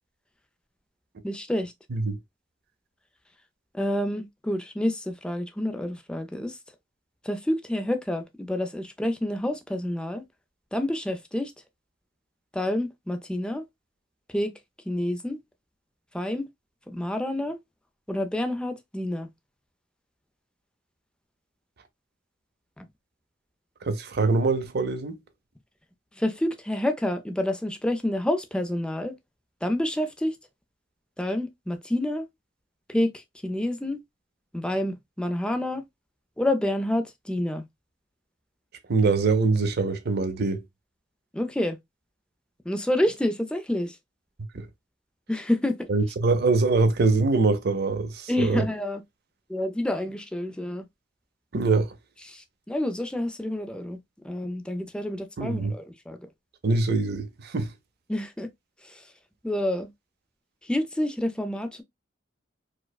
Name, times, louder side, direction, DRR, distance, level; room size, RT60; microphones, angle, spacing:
voice 1, 1.2-1.7 3.7-6.6 7.3-10.2 10.7-11.5 12.5-13.6 14.3-14.5 14.9-15.4 16.1-16.5 16.9-17.6 18.1-19.3 22.8-22.9 26.2-29.1 29.6-30.3 31.2-32.3 32.9-33.1 33.4-34.0 34.5-35.8 36.4-37.6 41.3-41.8 42.7-43.9 45.3-45.9 48.3-49.0 49.5-50.9 52.3-54.0 54.2-56.2 58.1-58.5 59.4-59.9 60.7-61.8, left 1 dB, 5° left, 0.4 m, -28 dB
voice 2, 23.8-25.2 38.9-40.6 44.5-44.7 45.9-48.6 51.5-51.9 55.4-55.7 56.6-57.7, right 3 dB, 55° right, 0.6 m, -23 dB
4.6 x 2.1 x 2.2 m
head